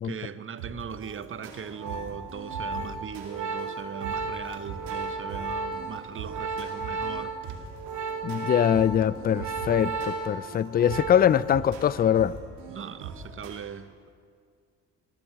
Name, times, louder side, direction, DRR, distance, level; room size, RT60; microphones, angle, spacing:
voice 1, 0.0-7.4 12.7-14.1, right 7 dB, 30° right, 14 dB, 0.8 m, -39 dB
sound 1, 0.6-13.5, right 5 dB, 85° right, 2.5 m, -42 dB
Organ, 1.5-11.5 11.8-12.1, right 4 dB, 45° right, 1.4 m, -34 dB
voice 2, 8.2-12.4, left 9 dB, 25° left, 20 dB, 0.3 m, -23 dB
19.0 x 7.9 x 7.5 m, 2.2 s
hypercardioid pair, 55°, 40 cm